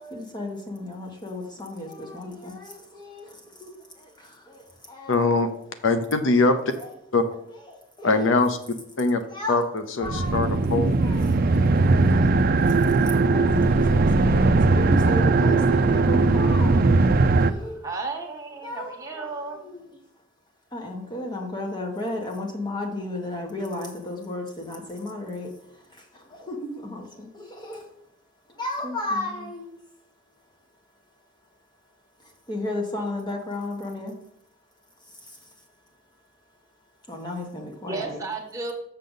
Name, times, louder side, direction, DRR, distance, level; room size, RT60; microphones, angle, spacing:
voice 1, 0.0-5.5 6.7-6.9 7.5-8.3 9.3-9.7 10.0-10.6 11.0-17.8 18.6-20.0 20.7-28.0 28.5-29.8 30.4-30.5 32.2-34.2 35.0-35.7 37.0-38.2, left 1 dB, 25° left, 2 dB, 1.4 m, -34 dB
voice 2, 5.1-5.5 5.8-6.6 7.1-7.2 8.0-8.6 9.0-9.2 9.5-9.6 10.0-11.0, left 3 dB, 85° left, 9 dB, 0.7 m, -21 dB
sound 1, 10.0-17.5, right 3 dB, 50° right, 0.4 m, -19 dB
voice 3, 17.8-19.6 37.9-38.7, right 3 dB, 20° right, 1 dB, 1.3 m, -33 dB
6.8 x 6.6 x 3.9 m, 0.73 s
head